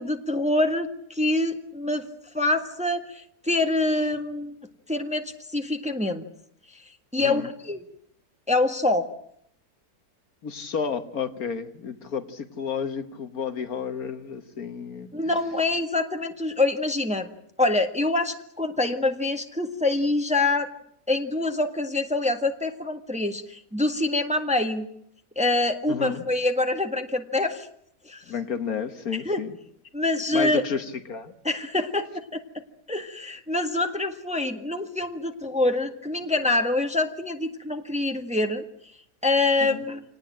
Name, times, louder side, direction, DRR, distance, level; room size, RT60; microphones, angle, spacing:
voice 1, 0.0-2.1 2.3-4.5 4.9-6.2 7.1-7.8 8.5-9.1 15.1-17.3 17.6-20.7 21.1-24.9 25.3-27.7 28.0-28.2 29.2-29.4 29.9-30.6 31.4-32.4 32.9-38.6 39.2-40.0, left 2 dB, 5° right, 6 dB, 1.5 m, -25 dB
voice 2, 7.2-7.5 10.4-15.1 25.9-26.3 28.3-29.6 30.3-31.3 39.6-39.8, left 6 dB, 60° left, 9 dB, 1.7 m, -31 dB
26.5 x 19.0 x 8.9 m, 0.70 s
omnidirectional pair, 1.8 m